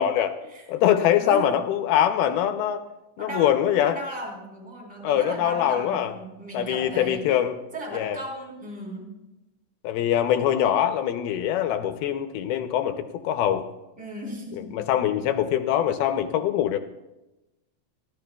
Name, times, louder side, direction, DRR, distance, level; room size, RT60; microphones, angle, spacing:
voice 1, 0.0-0.4 0.7-2.8 3.2-4.0 5.0-6.1 6.5-7.6 7.9-8.2 9.8-13.6 14.6-16.8, left 10 dB, 80° left, 7 dB, 2.3 m, -23 dB
voice 2, 1.1-1.6 3.2-3.6 3.8-7.2 7.7-9.1 14.0-14.7, equal, ahead, -1 dB, 2.6 m, -36 dB
23.5 x 15.0 x 2.3 m, 1.0 s
omnidirectional pair, 5.0 m